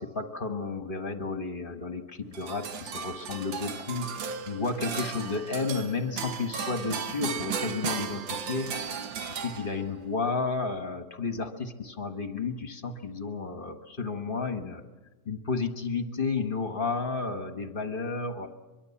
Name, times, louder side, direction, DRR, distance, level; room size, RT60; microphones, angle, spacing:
voice 1, 0.0-8.7 9.3-14.8 15.2-18.5, left 4 dB, 30° left, 6 dB, 1.5 m, -32 dB
sound 1, 2.3-10.0, right 6 dB, 85° right, 2.0 m, -35 dB
24.0 x 23.0 x 7.2 m, 1.2 s
omnidirectional pair, 2.0 m